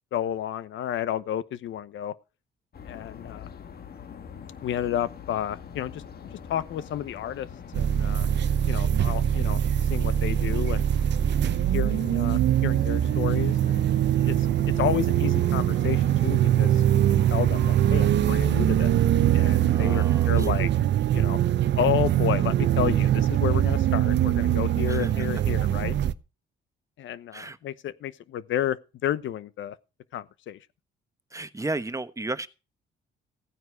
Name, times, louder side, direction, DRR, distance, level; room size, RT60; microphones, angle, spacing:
voice 1, 0.1-2.1 2.8-3.5 4.6-6.0 6.5-7.5 7.7-8.3 8.7-10.9 11.7-13.8 14.2-18.9 19.3-20.7 21.1-21.4 21.8-25.9 27.0-29.8 30.1-30.6, left 11 dB, 75° left, 1.0 m, -31 dB
sound 1, 2.7-19.8, left 7 dB, 50° left, 1.6 m, -43 dB
sound 2, 7.7-26.1, right 11 dB, 65° right, 0.8 m, -23 dB
voice 2, 19.7-20.5 24.9-25.1 27.3-27.6 31.3-32.5, right 2 dB, 15° right, 1.1 m, -34 dB
15.5 x 9.5 x 4.7 m
cardioid pair, 90°, 20 cm